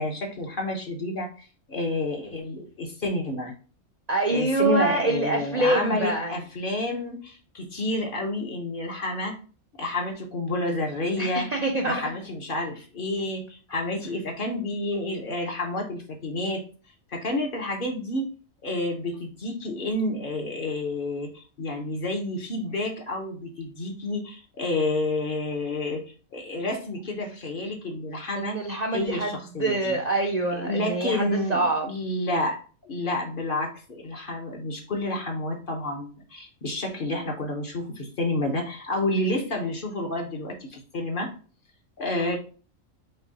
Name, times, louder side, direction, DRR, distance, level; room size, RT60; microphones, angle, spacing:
voice 1, 0.0-3.5 4.3-9.4 9.8-11.5 11.8-16.6 17.1-18.3 18.6-26.0 26.3-28.6 28.9-30.0 30.5-32.6 32.8-41.3 42.0-42.4, left 2 dB, 45° left, 1 dB, 0.9 m, -29 dB
voice 2, 4.1-6.4 11.2-12.0 28.4-31.9 42.3-42.4, right 2 dB, 50° right, 1 dB, 0.5 m, -25 dB
5.5 x 2.2 x 3.9 m, 0.38 s
omnidirectional pair, 1.4 m